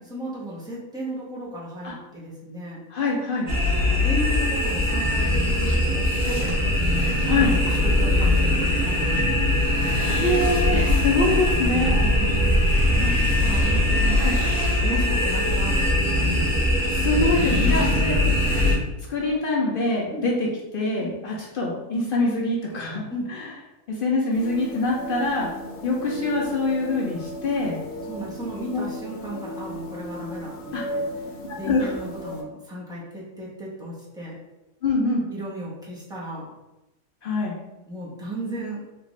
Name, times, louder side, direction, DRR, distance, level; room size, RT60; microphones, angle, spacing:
voice 1, 0.1-2.8 3.6-6.6 7.3-9.5 10.7-10.9 12.0-12.3 12.8-14.2 14.8-16.3 17.4-18.0 20.1-20.3 21.0-21.2 23.1-23.3 28.1-31.1 31.5-34.3 35.3-36.5 37.9-38.8, right 1 dB, 5° right, -7 dB, 0.7 m, -34 dB
voice 2, 2.9-3.5 7.2-7.5 10.2-12.0 13.0-13.1 14.2-14.3 16.9-18.2 19.1-20.5 20.7-23.5 23.9-25.5 25.8-27.8 28.7-28.9 30.7-30.8 31.6-31.9 34.8-35.2 37.2-37.5, left 2 dB, 60° left, -2 dB, 0.5 m, -24 dB
sound 1, 3.5-18.7, left 1 dB, 65° right, 1.3 m, -21 dB
sound 2, 24.3-32.4, left 1 dB, 80° left, 1.0 m, -36 dB
3.5 x 2.4 x 3.1 m, 0.99 s
omnidirectional pair, 1.4 m